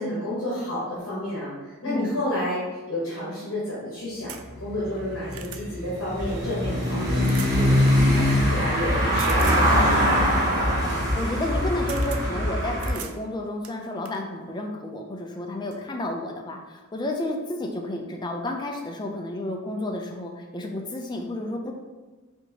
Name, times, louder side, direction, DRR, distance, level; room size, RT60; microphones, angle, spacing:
voice 1, 0.0-2.6 2.9-10.3, left 1 dB, 65° left, -9 dB, 1.2 m, -30 dB
voice 2, 1.9-2.2 8.0-8.3 11.1-21.7, left 1 dB, 20° left, 1 dB, 0.4 m, -31 dB
sound 1, 4.3-4.4 5.0-5.6 7.2-7.6 9.2-9.7 11.4-11.5 11.9-12.2 12.8-13.2 13.6-14.2 15.2-15.3 15.7-15.8, right 9 dB, 80° right, 0.3 m, -39 dB
sound 2, 4.5-12.5, left 1 dB, 50° right, 1.0 m, -26 dB
Car passing by / Engine, 6.2-12.9, equal, 20° right, 1.3 m, -24 dB
4.5 x 2.6 x 2.8 m, 1.3 s
head